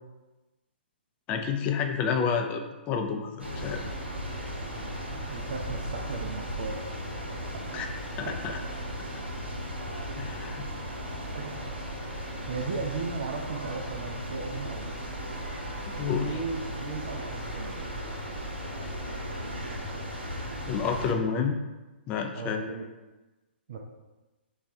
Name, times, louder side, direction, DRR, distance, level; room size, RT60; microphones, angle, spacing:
voice 1, 1.3-3.8 7.7-7.9 8.2-8.6 10.2-10.7 15.9-16.3 20.7-21.6 22.1-22.6, left 6 dB, 20° left, 4 dB, 0.4 m, -29 dB
sound 1, 3.4-21.1, equal, 90° right, 0.9 m, -36 dB
voice 2, 4.6-7.7 8.3-8.5 11.3-11.6 12.5-15.0 16.1-17.8 22.3-22.9 23.7-23.8, right 4 dB, 50° right, 2 dB, 0.4 m, -37 dB
3.9 x 2.3 x 4.1 m, 1.1 s
figure-of-eight pair, 125°, 6 cm